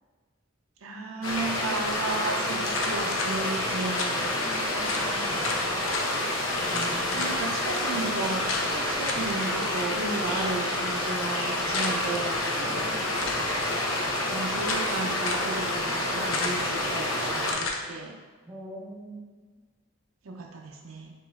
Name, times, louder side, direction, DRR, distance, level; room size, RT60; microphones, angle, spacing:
voice 1, 0.8-4.3 7.1-12.4 14.2-18.2 20.2-21.1, right 3 dB, 80° right, 1 dB, 0.5 m, -34 dB
sound 1, 1.2-17.5, left 1 dB, 90° left, 0.9 m, -28 dB
sound 2, 2.7-3.3 4.0-4.2 4.5-4.6 4.9-5.1 5.4-6.0 6.7-7.3 7.7-7.8 8.5-8.7 9.1-9.3 11.7-12.2 13.1-13.5 14.2-14.9 15.2-15.5 16.3-16.7 17.5-17.8, left 3 dB, 70° left, 0.6 m, -33 dB
voice 2, 4.3-5.5 6.7-7.3 12.5-13.1 18.4-19.3, right 1 dB, 15° right, -5 dB, 1.2 m, -42 dB
4.9 x 3.0 x 3.5 m, 1.4 s
head